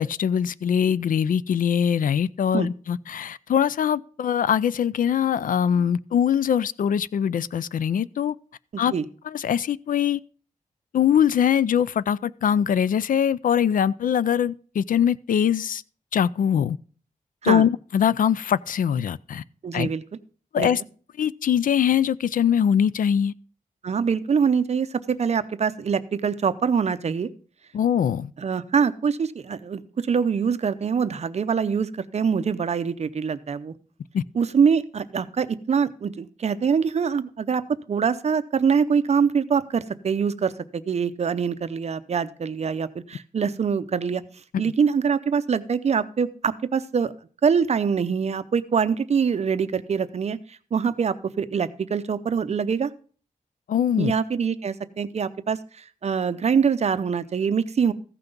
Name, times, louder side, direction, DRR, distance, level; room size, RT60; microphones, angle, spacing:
voice 1, 0.0-8.3 8.8-8.9 9.2-10.2 10.9-15.8 16.1-16.8 17.4-19.4 19.7-19.9 20.5-20.8 21.2-23.3 27.7-28.3 34.1-34.2 44.5-44.7 53.7-54.1, left 8 dB, 75° left, 0.4 m, -22 dB
voice 2, 8.7-9.0 17.4-17.6 19.6-20.0 20.6-20.7 23.8-27.3 28.4-33.7 34.3-44.2 44.6-47.1 47.4-52.9 54.0-57.9, right 6 dB, 50° right, 0.6 m, -24 dB
14.5 x 5.9 x 5.2 m
wide cardioid pair, 165°, 14 cm